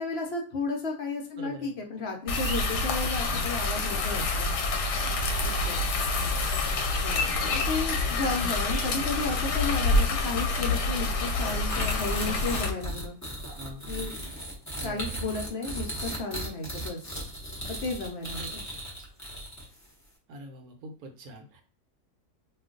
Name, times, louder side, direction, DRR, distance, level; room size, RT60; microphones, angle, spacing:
voice 1, 0.0-4.5 5.4-5.9 7.0-13.2 13.9-14.3 14.8-17.0 17.8-18.6, left 3 dB, 60° left, 1 dB, 0.7 m, -33 dB
voice 2, 1.4-1.8 6.0-6.5 8.0-8.4 13.5-13.8 14.7-15.2 18.3-18.9 20.3-21.6, right 1 dB, 70° right, 4 dB, 1.0 m, -45 dB
sound 1, 2.3-12.7, left 3 dB, 90° left, 1.2 m, -27 dB
sound 2, 11.3-19.8, right 1 dB, 15° left, 0.6 m, -36 dB
2.5 x 2.3 x 3.7 m, 0.42 s
omnidirectional pair, 1.7 m